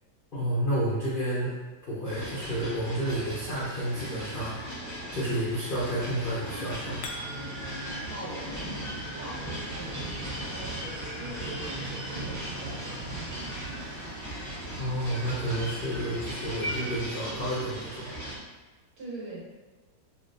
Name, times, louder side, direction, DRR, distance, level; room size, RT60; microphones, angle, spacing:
voice 1, 0.3-1.5 1.9-4.6 5.1-7.0 14.7-18.1, right 1 dB, 65° left, -9 dB, 0.5 m, -30 dB
sound 1, 2.0-18.4, right 1 dB, 25° right, 0.4 m, -38 dB
sound 2, 5.9-17.5, right 1 dB, 85° right, 1.4 m, -45 dB
sound 3, 7.0-8.1, equal, 90° left, 1.3 m, -41 dB
voice 2, 8.1-8.8 9.2-13.9 19.0-19.4, right 1 dB, 65° right, -6 dB, 1.6 m, -42 dB
3.2 x 2.6 x 2.6 m, 1.2 s
omnidirectional pair, 1.9 m